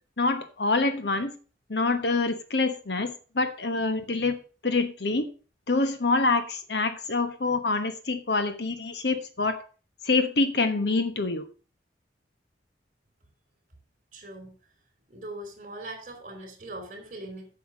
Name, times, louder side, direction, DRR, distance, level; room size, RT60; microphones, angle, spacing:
voice 1, 0.2-1.3 1.7-4.4 4.6-5.3 5.7-9.6 10.0-11.5, left 3 dB, 65° left, 1.2 m, -26 dB
voice 2, 14.1-14.5 15.1-17.5, right 1 dB, 45° right, 3.7 m, -40 dB
8.4 x 6.9 x 6.2 m
head